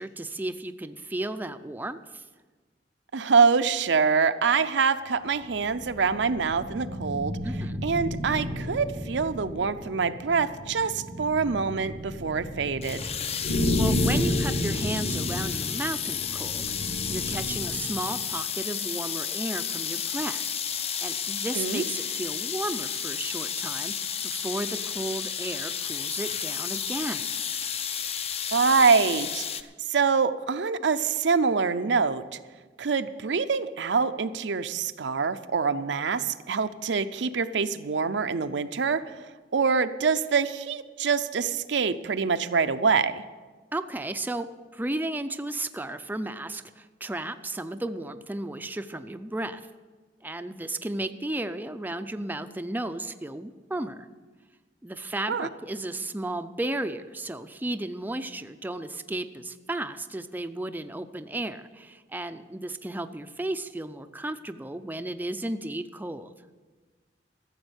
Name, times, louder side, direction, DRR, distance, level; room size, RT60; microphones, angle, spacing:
voice 1, 0.0-2.2 7.4-7.8 13.8-16.7 17.1-20.5 21.0-24.0 24.2-27.3 43.7-44.5 44.7-49.6 50.2-54.1 54.8-66.3, right 1 dB, 10° right, 9 dB, 0.4 m, -34 dB
voice 2, 3.1-7.4 7.8-13.0 21.5-21.8 28.5-29.4 29.9-32.2 32.8-39.0 39.5-43.2 55.3-55.5, right 5 dB, 75° right, 10 dB, 0.6 m, -25 dB
sound 1, 5.4-18.0, left 1 dB, 65° left, 2.1 m, -32 dB
sound 2, 12.8-29.6, left 8 dB, 35° left, 0.6 m, -32 dB
14.0 x 7.2 x 8.0 m, 1.3 s
head